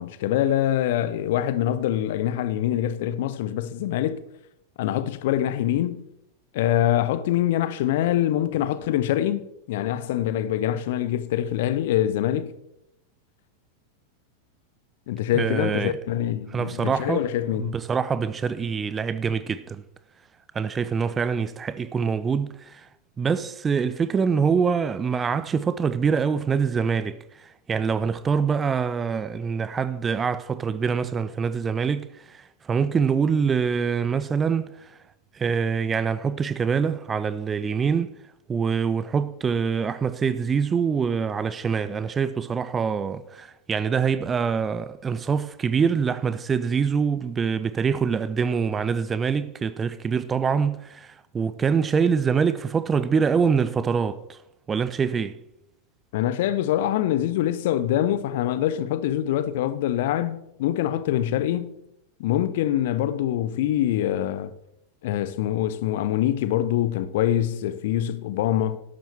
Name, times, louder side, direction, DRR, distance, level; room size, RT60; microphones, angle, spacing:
voice 1, 0.0-4.2 4.8-6.1 6.5-12.5 15.1-17.8 56.1-61.7 62.2-64.5 65.0-68.8, left 12 dB, 55° left, 0.7 m, -24 dB
voice 2, 15.3-16.0 16.5-17.2 17.5-19.8 20.5-22.9 23.2-34.9 35.3-38.1 38.5-54.4 54.7-55.4, right 6 dB, 20° right, 0.5 m, -25 dB
13.0 x 12.0 x 3.5 m
figure-of-eight pair, 90°, 0 cm